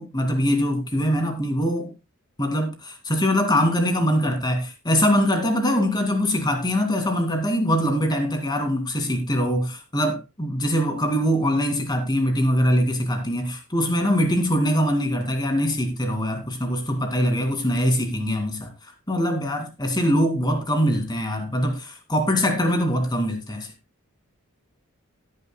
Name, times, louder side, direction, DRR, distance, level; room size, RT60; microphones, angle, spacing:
voice 1, 0.0-1.9 2.4-18.7 19.1-23.7, equal, 20° left, 2.3 m, -23 dB
17.5 x 9.7 x 2.2 m
head